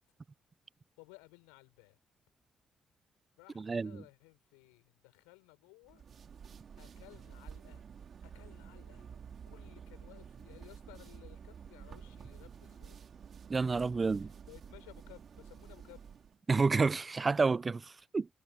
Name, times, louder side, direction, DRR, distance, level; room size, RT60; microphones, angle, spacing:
voice 1, 1.0-2.0 3.4-6.0 6.8-7.8 8.2-9.1 9.5-13.0 13.9-16.2, left 29 dB, 90° left, 4.7 m, -58 dB
voice 2, 3.6-4.0 13.5-14.3 16.5-18.3, right 4 dB, 40° right, 0.3 m, -29 dB
sound 1, 5.8-16.4, right 7 dB, 60° right, 2.8 m, -51 dB
hypercardioid pair, 45°, 0 cm